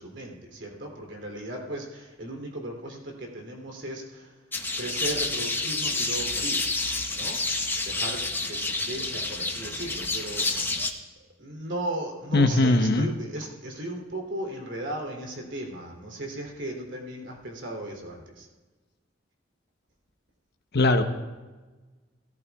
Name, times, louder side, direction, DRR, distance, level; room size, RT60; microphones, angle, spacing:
voice 1, 0.0-4.4 4.8-6.7 7.1-7.4 7.8-10.7 11.4-18.5, right 1 dB, 65° right, 0 dB, 3.2 m, -36 dB
sound 1, 4.5-10.9, left 2 dB, 10° left, 0.9 m, -29 dB
voice 2, 12.3-13.1 20.7-21.0, left 2 dB, 55° left, 7 dB, 1.0 m, -20 dB
17.0 x 13.5 x 2.4 m, 1.2 s
head